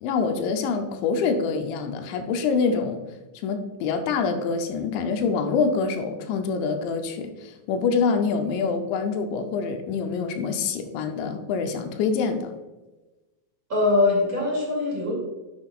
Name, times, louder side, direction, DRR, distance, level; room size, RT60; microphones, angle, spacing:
voice 1, 0.0-3.0 3.4-12.6, left 5 dB, 80° left, 6 dB, 2.9 m, -25 dB
voice 2, 13.7-15.1, left 3 dB, 30° right, -5 dB, 2.1 m, -22 dB
10.5 x 7.3 x 2.4 m, 1.1 s
omnidirectional pair, 5.3 m